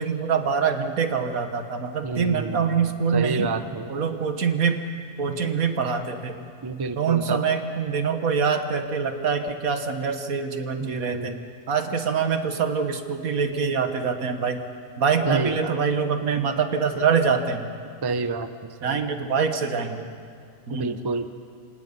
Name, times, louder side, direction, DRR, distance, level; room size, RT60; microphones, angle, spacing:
voice 1, 0.0-3.5 3.9-4.8 5.2-6.4 7.0-11.4 11.7-14.6 15.0-17.7 18.8-20.1 20.7-21.0, right 6 dB, 80° right, 7 dB, 1.8 m, -25 dB
voice 2, 2.0-2.9 3.1-3.9 6.6-7.4 10.8-11.4 15.3-15.8 18.0-18.5 18.8-19.0 20.7-21.3, right 4 dB, 25° right, 9 dB, 0.6 m, -28 dB
28.5 x 25.5 x 5.5 m, 2.3 s
omnidirectional pair, 1.5 m